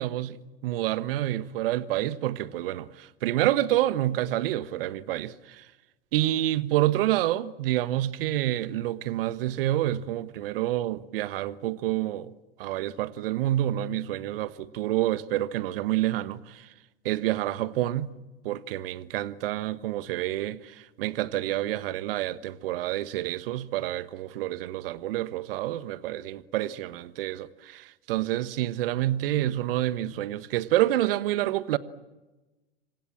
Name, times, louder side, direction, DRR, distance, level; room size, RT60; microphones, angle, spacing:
voice 1, 0.0-5.7 6.1-12.3 12.6-16.7 17.0-18.1 18.4-31.8, right 14 dB, 60° right, 1.5 m, -28 dB
28.0 x 25.5 x 7.4 m
figure-of-eight pair, 90°, 31 cm